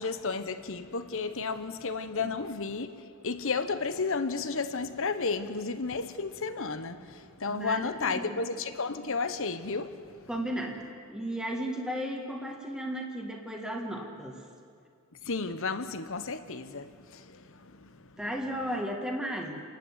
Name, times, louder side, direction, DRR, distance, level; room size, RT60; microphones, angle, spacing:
voice 1, 0.0-3.0 3.2-10.3 15.2-18.2, left 4 dB, 65° left, 10 dB, 1.2 m, -33 dB
voice 2, 7.5-8.4 10.3-14.4 18.2-19.6, equal, 5° right, 1 dB, 1.8 m, -35 dB
29.5 x 12.0 x 8.3 m, 2.3 s
head